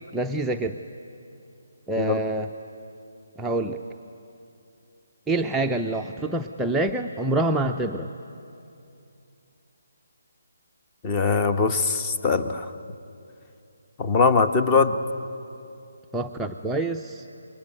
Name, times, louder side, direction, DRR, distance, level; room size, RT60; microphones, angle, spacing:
voice 1, 0.1-0.8 1.9-2.5 3.4-3.8 5.3-8.1 16.1-17.2, right 2 dB, 5° right, 1 dB, 0.6 m, -26 dB
voice 2, 11.0-12.7 14.0-14.9, left 4 dB, 20° left, 9 dB, 1.2 m, -21 dB
28.0 x 22.0 x 9.3 m, 2.7 s
figure-of-eight pair, 145°, 0 cm